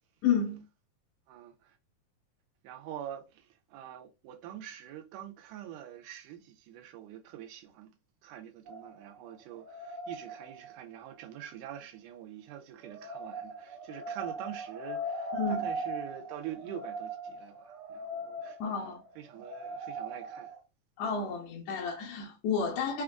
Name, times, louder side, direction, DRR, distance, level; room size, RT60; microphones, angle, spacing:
voice 1, 0.2-0.6 15.3-15.7 18.6-19.0 21.0-23.0, left 6 dB, 75° left, 1.8 m, -31 dB
voice 2, 1.3-1.8 2.6-7.9 8.2-18.6 19.2-20.5, right 11 dB, 90° right, 2.2 m, -45 dB
sound 1, 8.7-11.0 12.8-20.6, right 1 dB, 65° right, 1.8 m, -40 dB
5.1 x 2.4 x 2.2 m
omnidirectional pair, 3.7 m